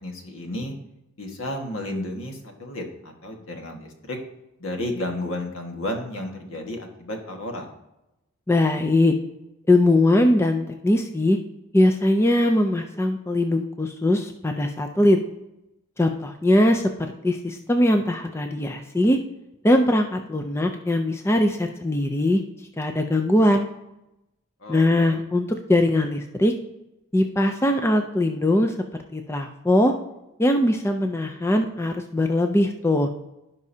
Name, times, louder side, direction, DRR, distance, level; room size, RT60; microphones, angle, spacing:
voice 1, 0.0-0.7 1.2-4.2 4.6-7.7 24.6-25.2, left 1 dB, 80° left, 2 dB, 1.6 m, -32 dB
voice 2, 8.5-9.1 9.7-11.4 11.7-15.2 16.0-16.8 17.2-19.2 19.6-22.4 22.8-23.7 24.7-26.5 27.1-28.7 29.1-29.9 30.4-33.1, left 1 dB, 10° left, 5 dB, 0.4 m, -21 dB
16.0 x 5.4 x 2.8 m, 0.90 s
head